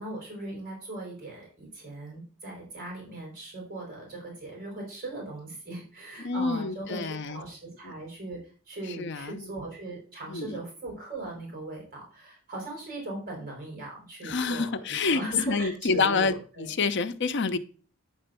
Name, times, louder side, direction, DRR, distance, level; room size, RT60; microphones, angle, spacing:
voice 1, 0.0-8.4 8.6-16.7, right 2 dB, 45° right, -2 dB, 4.5 m, -39 dB
voice 2, 6.2-7.4 7.8-7.9 9.0-9.5 10.3-10.6 14.2-17.6, left 4 dB, 60° left, 10 dB, 0.7 m, -28 dB
9.8 x 3.3 x 6.8 m, 0.40 s
head